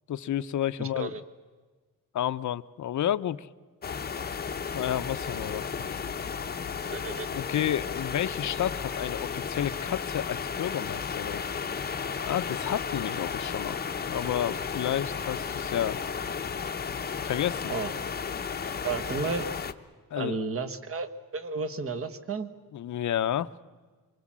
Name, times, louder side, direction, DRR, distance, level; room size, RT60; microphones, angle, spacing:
voice 1, 0.1-1.1 2.1-3.5 4.7-6.0 7.3-11.4 12.2-13.8 14.1-16.0 17.2-17.7 20.1-20.4 22.7-23.5, left 11 dB, 60° left, 14 dB, 0.7 m, -31 dB
voice 2, 0.8-1.2 6.9-7.3 17.7-17.9 18.8-19.5 20.1-22.5, right 4 dB, 40° right, 10 dB, 1.4 m, -32 dB
sound 1, 3.8-19.7, left 6 dB, 30° left, 0.8 m, -34 dB
25.5 x 23.5 x 7.5 m, 1.4 s
wide cardioid pair, 180°, 34 cm